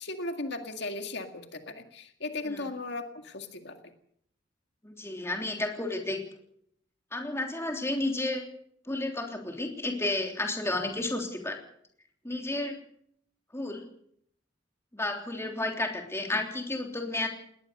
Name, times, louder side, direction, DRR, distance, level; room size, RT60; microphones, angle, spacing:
voice 1, 0.0-3.9, left 2 dB, 65° left, 6 dB, 2.0 m, -37 dB
voice 2, 4.8-6.2 7.1-8.4 8.9-11.6 12.2-12.8 13.5-13.8 14.9-17.3, left 2 dB, 15° left, 3 dB, 3.3 m, -32 dB
20.0 x 19.5 x 6.7 m, 0.68 s
head